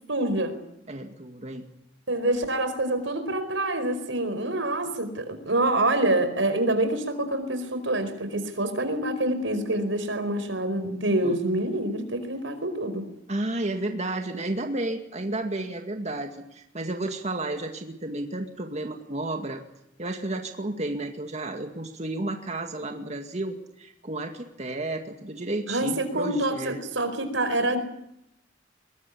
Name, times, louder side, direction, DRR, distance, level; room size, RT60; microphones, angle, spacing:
voice 1, 0.1-0.6 2.1-13.1 25.7-27.8, right 1 dB, 90° right, 9 dB, 4.8 m, -26 dB
voice 2, 0.9-1.7 11.2-11.4 13.3-19.6 20.0-26.8, right 2 dB, 40° right, 4 dB, 2.2 m, -32 dB
23.0 x 20.5 x 8.6 m, 0.81 s
head